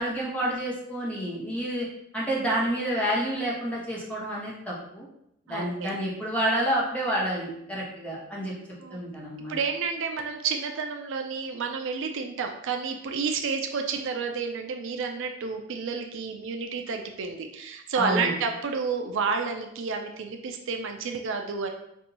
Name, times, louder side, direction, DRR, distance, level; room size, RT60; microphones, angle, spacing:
voice 1, 0.0-1.9 2.1-5.1 5.5-8.5 8.9-9.6 18.0-18.3, right 1 dB, 5° left, -6 dB, 1.1 m, -29 dB
voice 2, 5.5-5.9 8.8-9.0 9.5-21.7, right 5 dB, 65° right, 4 dB, 0.4 m, -30 dB
5.3 x 2.6 x 2.8 m, 0.78 s
head